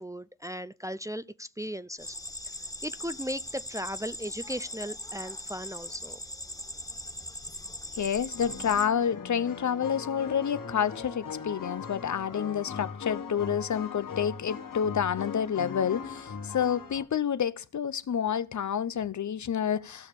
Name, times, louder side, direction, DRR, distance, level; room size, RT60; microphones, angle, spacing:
voice 1, 0.0-2.2 2.8-6.2, equal, 10° right, 0.5 m, -37 dB
sound 1, 2.0-8.9, left 1 dB, 10° left, 1.7 m, -40 dB
voice 2, 7.9-20.1, left 8 dB, 60° left, 0.7 m, -29 dB
sound 2, 8.3-17.0, left 6 dB, 80° left, 1.8 m, -39 dB
16.5 x 6.5 x 5.2 m
cardioid pair, 70°, 33 cm